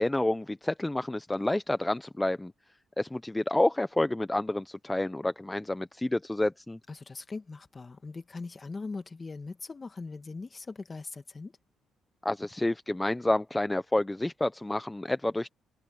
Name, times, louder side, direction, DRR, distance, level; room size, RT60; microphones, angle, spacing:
voice 1, 0.0-2.5 3.0-6.8 12.2-15.5, left 1 dB, 10° left, 0.8 m, -29 dB
voice 2, 6.9-11.5, left 3 dB, 30° left, 2.2 m, -40 dB
cardioid pair, 90°, 0 cm